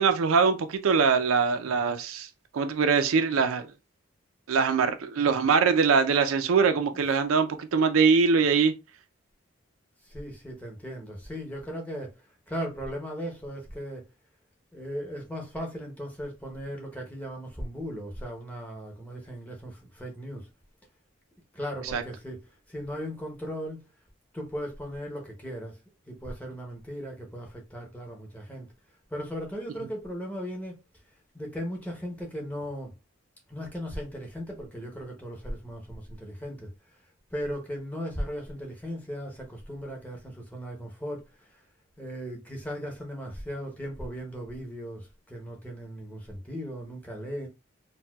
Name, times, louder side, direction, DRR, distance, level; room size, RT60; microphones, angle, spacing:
voice 1, 0.0-2.3 2.5-3.7 4.5-8.7 21.9-22.0, right 5 dB, 85° right, 0.4 m, -23 dB
voice 2, 10.0-14.1 14.7-20.5 21.5-23.8 24.3-25.8 26.1-28.7 29.1-30.8 31.3-32.9 33.5-41.6 42.0-47.5, equal, 10° left, 0.7 m, -37 dB
4.1 x 2.2 x 2.2 m
head